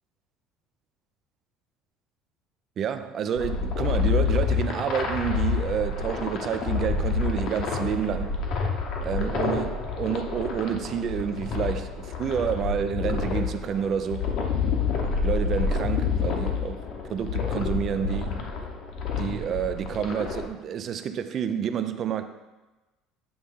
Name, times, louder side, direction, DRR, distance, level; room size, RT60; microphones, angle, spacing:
voice 1, 2.8-8.4 9.0-14.3 15.2-18.5 19.2-22.3, right 8 dB, 30° right, 0.4 m, -29 dB
sound 1, 3.4-20.5, left 5 dB, 45° left, 0.9 m, -28 dB
8.6 x 3.6 x 5.4 m
cardioid pair, 175°, 0 cm